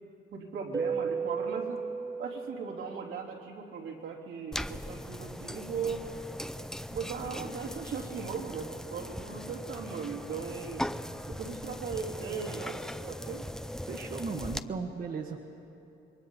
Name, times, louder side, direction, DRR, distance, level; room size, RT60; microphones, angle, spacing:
voice 1, 0.3-1.8 2.2-6.0 6.9-10.8 11.3-12.8 13.1-13.5, right 6 dB, 80° right, -2 dB, 3.4 m, -38 dB
Keyboard (musical), 0.7-3.3, right 5 dB, 25° right, 1.9 m, -34 dB
sound 1, 4.5-14.6, left 1 dB, 5° left, 0.5 m, -39 dB
voice 2, 13.8-15.4, right 4 dB, 45° right, 2 dB, 1.5 m, -36 dB
27.0 x 22.0 x 5.6 m, 2.9 s
cardioid pair, 90°, 20 cm